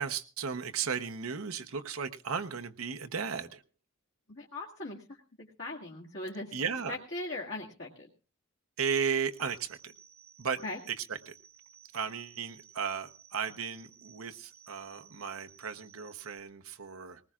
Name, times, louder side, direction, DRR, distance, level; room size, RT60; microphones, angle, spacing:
voice 1, 0.0-3.6 6.5-6.9 8.8-9.9 10.4-10.6 10.9-11.4 11.9-17.2, right 6 dB, 85° right, 6 dB, 1.0 m, -35 dB
voice 2, 4.3-5.2 5.6-6.5 6.9-8.1 10.6-10.8, left 2 dB, 55° left, -3 dB, 1.9 m, -39 dB
sound 1, 9.3-16.4, right 9 dB, 30° right, 0.9 m, -58 dB
20.0 x 19.0 x 2.5 m, 0.34 s
head